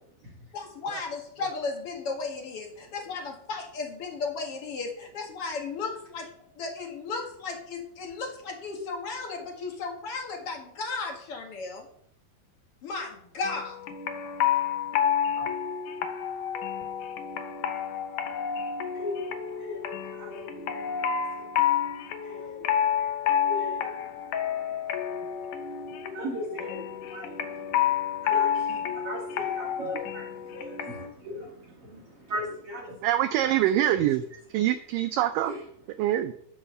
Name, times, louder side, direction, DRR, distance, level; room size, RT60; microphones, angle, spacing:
voice 1, 0.5-6.3 6.6-11.9 12.8-13.8, left 4 dB, 45° left, 2 dB, 2.2 m, -35 dB
sound 1, 13.4-31.1, left 9 dB, 70° left, 2.1 m, -29 dB
voice 2, 18.4-21.3 22.2-22.9 23.2-33.1 33.4-34.1 34.3-34.4 34.8-34.9 35.4-35.7 35.9-36.0, left 1 dB, 50° right, -2 dB, 2.2 m, -40 dB
voice 3, 33.0-34.2 34.5-35.5 36.0-36.3, right 12 dB, 85° right, 10 dB, 1.9 m, -24 dB
11.0 x 5.6 x 6.6 m, 0.66 s
omnidirectional pair, 4.4 m